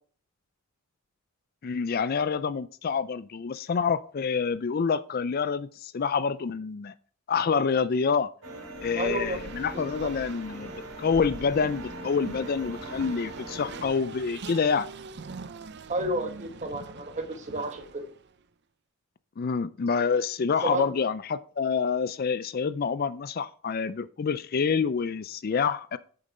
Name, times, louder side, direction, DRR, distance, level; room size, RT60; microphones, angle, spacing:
voice 1, 1.6-6.9 7.3-8.3 8.8-14.9 19.4-26.0, left 5 dB, 40° left, 15 dB, 0.4 m, -27 dB
sound 1, 8.4-13.9, equal, 75° right, 3.3 m, -41 dB
Race car auto racing, 8.7-18.3, right 4 dB, 50° right, 0.5 m, -43 dB
voice 2, 9.0-9.4 10.0-10.1 15.9-18.1 20.6-20.9, right 1 dB, 30° right, 6 dB, 1.4 m, -31 dB
9.0 x 6.7 x 4.2 m, 0.44 s
head